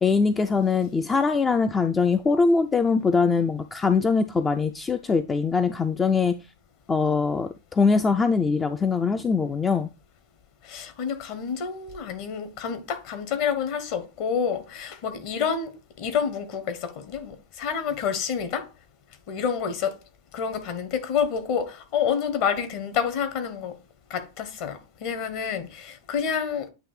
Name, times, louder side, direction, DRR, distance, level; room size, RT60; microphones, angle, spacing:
voice 1, 0.0-6.3 6.9-9.9, left 4 dB, 15° left, 0.4 m, -22 dB
voice 2, 10.6-18.7 19.3-20.0 20.3-23.8 24.1-26.7, left 7 dB, 45° left, 1.3 m, -28 dB
8.8 x 3.1 x 4.5 m
figure-of-eight pair, 90°, 0 cm